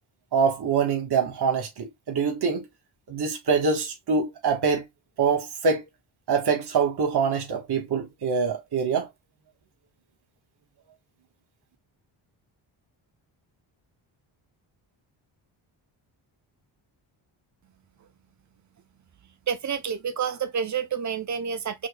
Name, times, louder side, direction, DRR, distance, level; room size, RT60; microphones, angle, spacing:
voice 1, 0.3-2.6 3.1-4.8 5.2-5.9 6.3-9.1, right 5 dB, 50° right, 1.4 m, -24 dB
voice 2, 19.5-21.9, right 7 dB, 35° right, 0.8 m, -29 dB
4.5 x 2.9 x 2.3 m
cardioid pair, 80°, 48 cm